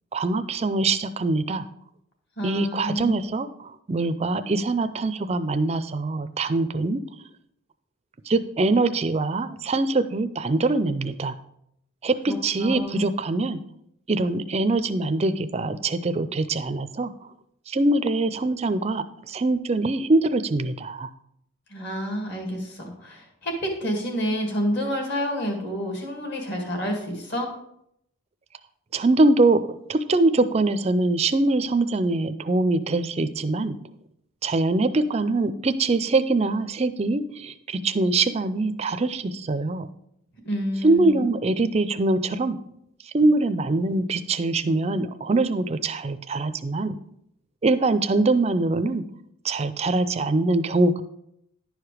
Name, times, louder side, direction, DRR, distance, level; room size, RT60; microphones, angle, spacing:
voice 1, 0.1-1.7 2.4-7.0 8.3-11.3 12.0-13.6 14.1-17.1 17.7-21.1 28.9-33.8 34.4-39.9 40.8-42.6 43.0-47.0 47.6-49.0 49.4-51.0, right 2 dB, 30° right, 11 dB, 0.4 m, -23 dB
voice 2, 2.4-3.1 12.3-13.1 21.7-27.5 40.5-41.3, equal, 50° left, 2 dB, 2.1 m, -29 dB
10.5 x 4.9 x 4.9 m, 0.76 s
head